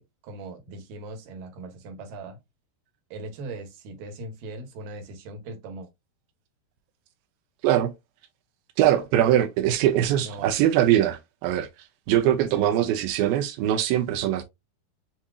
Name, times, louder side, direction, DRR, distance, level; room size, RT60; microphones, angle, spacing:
voice 1, 0.0-2.4 3.1-5.9 10.2-10.5 12.4-12.9, right 2 dB, 70° right, 2.3 m, -39 dB
voice 2, 8.8-11.7 12.1-14.4, right 12 dB, 85° right, 2.0 m, -22 dB
7.2 x 2.7 x 2.3 m
omnidirectional pair, 4.8 m